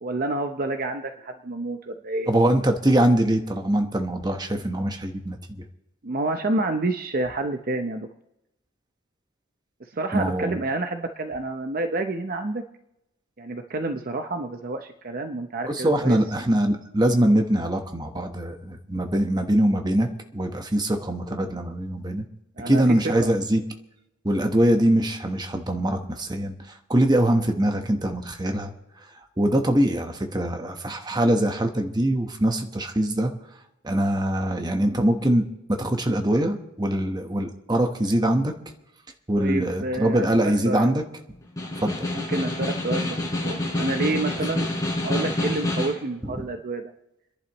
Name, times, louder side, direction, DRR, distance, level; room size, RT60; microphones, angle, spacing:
voice 1, 0.0-2.3 6.0-8.1 9.9-12.6 13.4-16.2 22.6-22.8 23.2-23.3 39.4-40.9 42.1-44.7 45.0-46.9, right 2 dB, 45° right, 6 dB, 0.7 m, -29 dB
voice 2, 2.3-5.6 10.1-10.6 15.7-22.2 22.7-23.6 24.2-26.6 26.9-28.7 29.4-33.3 33.8-38.5 39.3-41.0 41.8-42.1 46.4-46.5, right 1 dB, 20° right, 4 dB, 1.2 m, -23 dB
Snare drum, 41.4-46.1, left 1 dB, 15° left, 4.5 m, -27 dB
29.0 x 11.0 x 3.1 m, 0.88 s
head